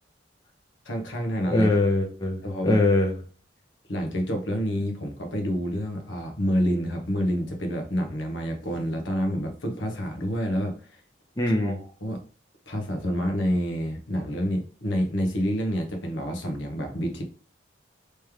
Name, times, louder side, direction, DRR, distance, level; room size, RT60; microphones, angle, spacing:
voice 1, 0.8-1.7 2.4-2.8 3.9-11.0 11.5-12.2 12.7-17.2, equal, 80° left, 4 dB, 1.0 m, -28 dB
voice 2, 1.5-3.2 11.4-11.8, left 2 dB, 20° left, 2 dB, 0.6 m, -22 dB
3.2 x 3.2 x 3.4 m, 0.41 s
head